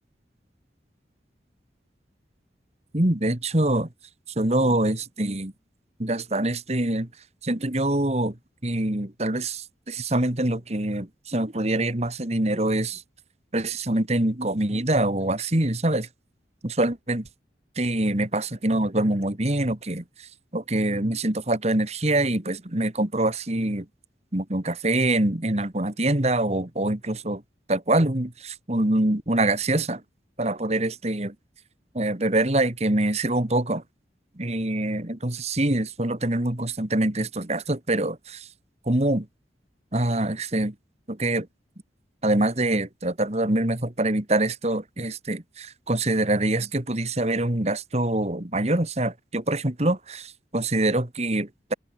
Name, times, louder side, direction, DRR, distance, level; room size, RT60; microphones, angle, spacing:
voice 1, 2.9-3.9 4.4-5.5 6.0-7.1 7.4-8.4 8.6-13.0 13.5-16.1 16.6-17.3 17.8-23.9 24.3-27.4 27.7-30.0 30.4-31.4 31.9-33.8 34.4-38.5 38.9-39.3 39.9-40.7 41.1-41.5 42.2-51.7, right 1 dB, 40° right, 2.0 m, -25 dB
head